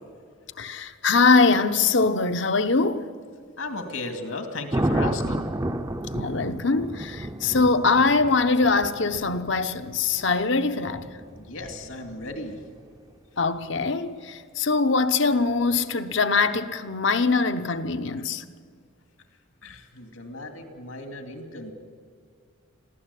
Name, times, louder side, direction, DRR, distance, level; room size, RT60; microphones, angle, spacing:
voice 1, 0.6-3.1 6.1-11.1 13.4-18.4, left 4 dB, 60° left, 0.9 m, -22 dB
voice 2, 3.6-5.5 11.4-12.6 19.6-21.7, left 2 dB, 80° left, 2.4 m, -35 dB
Thunder, 4.7-12.8 15.5-15.8, right 1 dB, 15° right, 0.6 m, -32 dB
22.5 x 15.0 x 8.4 m
head